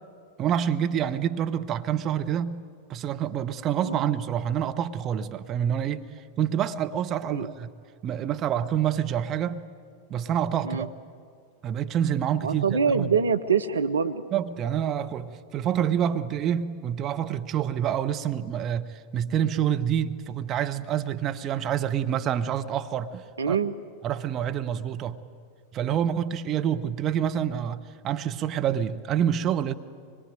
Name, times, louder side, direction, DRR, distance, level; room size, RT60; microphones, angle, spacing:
voice 1, 0.4-2.6 2.9-6.1 6.4-7.7 8.0-9.7 10.1-10.9 11.6-13.1 14.3-23.6 24.0-25.2 25.7-29.7, right 9 dB, 30° right, 1.0 m, -27 dB
voice 2, 12.4-14.2 23.4-23.7, right 6 dB, 70° right, 0.8 m, -25 dB
24.5 x 21.5 x 9.3 m
figure-of-eight pair, 90°, 0 cm